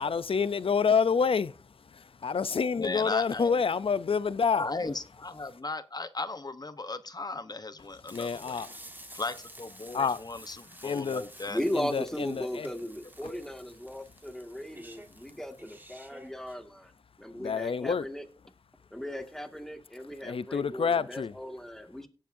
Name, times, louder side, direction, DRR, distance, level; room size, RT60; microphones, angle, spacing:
voice 1, 0.0-4.7 8.0-9.2 9.9-10.2 10.8-11.2 11.7-12.7 13.2-13.3 17.3-18.1 20.2-21.3, left 5 dB, 75° left, 0.5 m, -28 dB
voice 2, 2.8-3.6 4.6-8.6 9.1-11.6, left 3 dB, 45° left, 1.0 m, -36 dB
sound 1, 8.1-16.6, right 1 dB, 20° right, 1.6 m, -51 dB
voice 3, 11.5-16.9 17.2-18.2 18.9-22.1, equal, 5° left, 2.0 m, -37 dB
17.5 x 7.2 x 2.7 m
cardioid pair, 45°, 10 cm